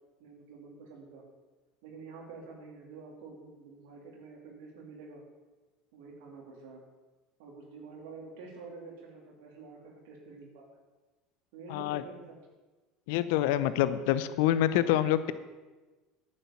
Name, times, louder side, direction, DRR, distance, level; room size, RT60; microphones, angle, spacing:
voice 1, 0.2-1.2 1.8-5.2 5.9-6.8 7.4-10.6 11.5-12.4, right 4 dB, 75° right, 0 dB, 2.6 m, -48 dB
voice 2, 11.7-12.0 13.1-15.3, left 12 dB, 75° left, 14 dB, 0.6 m, -26 dB
9.3 x 7.6 x 7.1 m, 1.2 s
hypercardioid pair, 85°, 0 cm